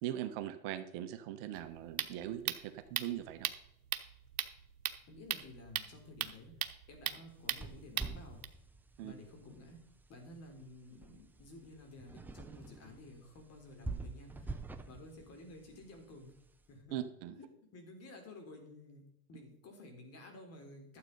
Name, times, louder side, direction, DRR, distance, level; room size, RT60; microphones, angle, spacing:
voice 1, 0.0-3.5 9.0-9.1 16.9-17.3, right 12 dB, 50° right, 10 dB, 1.1 m, -40 dB
sound 1, 1.5-8.5, right 10 dB, 80° right, 1.1 m, -39 dB
voice 2, 5.1-6.5 6.9-8.5 9.0-9.8 10.1-14.6 14.9-16.3 16.7-17.0 17.3-17.5 17.7-21.0, left 2 dB, 35° left, 4 dB, 3.7 m, -53 dB
sound 2, 7.3-16.7, right 3 dB, 5° right, 0.4 m, -48 dB
12.0 x 7.7 x 5.4 m, 0.74 s
hypercardioid pair, 115°, 44 cm